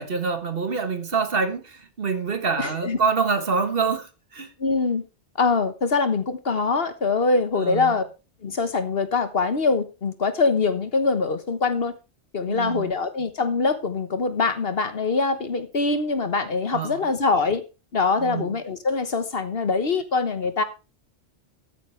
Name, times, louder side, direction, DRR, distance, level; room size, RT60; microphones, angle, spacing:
voice 1, 0.0-4.1 4.3-4.5 7.6-7.9 12.5-12.9 16.7-17.0 18.2-18.5, right 5 dB, 55° right, 1.6 m, -26 dB
voice 2, 2.6-3.0 4.6-5.0 5.3-8.0 8.4-11.9 12.3-17.6 17.9-20.6, left 4 dB, 55° left, 1.4 m, -23 dB
13.0 x 9.5 x 3.3 m
omnidirectional pair, 1.2 m